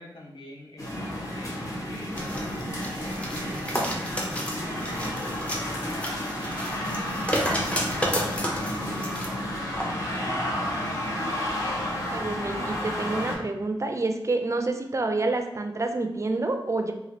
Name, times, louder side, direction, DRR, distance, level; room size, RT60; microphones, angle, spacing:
voice 1, 0.0-5.0 5.6-10.7, left 1 dB, 60° left, -3 dB, 0.7 m, -47 dB
sound 1, 0.8-13.4, left 1 dB, 35° left, 1.1 m, -31 dB
sound 2, 2.2-9.3 9.7-9.8, equal, 15° left, 0.6 m, -31 dB
voice 2, 12.1-16.9, right 2 dB, 35° right, 5 dB, 0.4 m, -28 dB
3.1 x 2.3 x 2.7 m, 0.92 s
cardioid pair, 45°, 9 cm